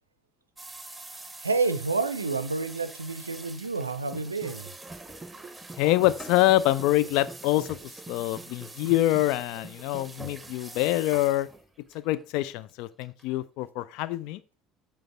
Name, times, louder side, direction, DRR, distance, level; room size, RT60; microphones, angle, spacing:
sound 1, 0.6-13.2, right 2 dB, 10° right, 1.4 m, -45 dB
voice 1, 1.4-4.7, right 3 dB, 85° right, 0.5 m, -29 dB
sound 2, 4.0-10.4, right 3 dB, 25° right, 0.6 m, -47 dB
voice 2, 5.8-11.5 11.9-14.4, left 16 dB, 60° left, 0.4 m, -25 dB
7.7 x 5.1 x 5.7 m
figure-of-eight pair, 60°, 0 cm